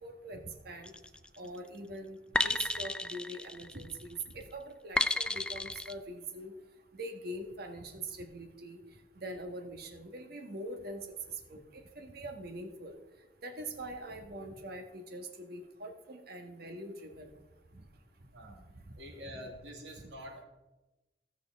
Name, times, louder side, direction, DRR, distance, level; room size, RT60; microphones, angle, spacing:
voice 1, 0.0-0.4 0.6-0.9 1.4-2.2 2.4-6.5 7.0-8.8 9.2-11.0 11.5-13.0 13.4-17.3 19.3-19.4, right 1 dB, 60° right, 4 dB, 1.4 m, -43 dB
sound 1, 0.8-1.3 2.3-4.0 5.0-5.9, left 2 dB, 5° left, 0.3 m, -32 dB
voice 2, 18.3-18.7 18.9-20.4, equal, 85° right, 1 dB, 2.2 m, -46 dB
16.5 x 6.5 x 3.5 m, 1.1 s
head